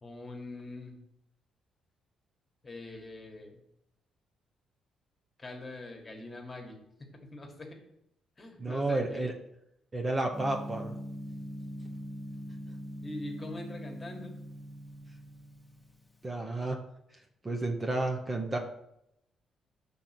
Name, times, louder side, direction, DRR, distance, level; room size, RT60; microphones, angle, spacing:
voice 1, 0.0-1.0 2.6-3.6 5.4-6.8 7.1-7.8 8.4-9.2 13.0-14.4, left 2 dB, 25° left, 3 dB, 1.6 m, -43 dB
voice 2, 8.6-9.3 9.9-11.0 16.2-16.8 17.4-18.6, right 2 dB, 25° right, 2 dB, 0.8 m, -31 dB
Gong, 10.3-16.2, equal, 5° left, 1.1 m, -42 dB
5.8 x 3.8 x 5.9 m, 0.80 s
cardioid pair, 90°, 0 cm